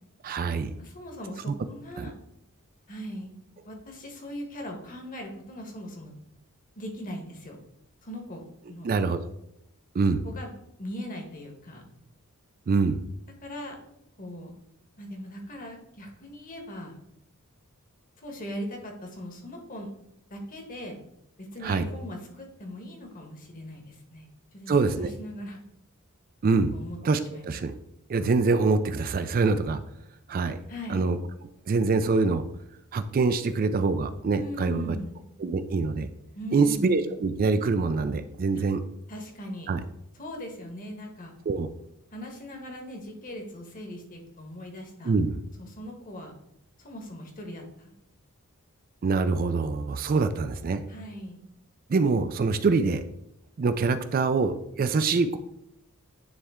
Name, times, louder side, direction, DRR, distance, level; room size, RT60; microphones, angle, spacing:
voice 1, 0.2-0.7 1.5-1.6 2.0-2.1 8.8-9.2 9.9-10.2 12.7-13.0 21.6-21.8 24.7-25.1 26.4-26.7 27.0-27.7 28.1-29.8 30.3-30.6 30.9-31.2 31.7-32.4 32.9-35.0 35.4-36.1 36.5-38.8 39.7-39.8 41.5-41.7 45.0-45.4 49.0-50.8 51.9-53.0 53.6-55.4, right 4 dB, 40° right, 10 dB, 0.3 m, -24 dB
voice 2, 0.8-2.1 2.9-3.3 3.6-6.1 6.8-7.6 8.0-8.4 8.7-8.9 10.2-10.5 10.8-11.9 13.4-13.8 14.2-14.5 15.0-17.0 18.2-19.9 20.3-21.0 21.4-25.6 26.7-27.0 27.3-27.5 30.7-31.1 34.3-35.2 36.3-36.9 39.1-39.7 40.1-41.3 42.1-45.1 45.6-46.3 46.8-47.9 50.9-51.4, equal, 40° left, 3 dB, 1.2 m, -39 dB
9.6 x 3.3 x 3.6 m, 0.79 s
head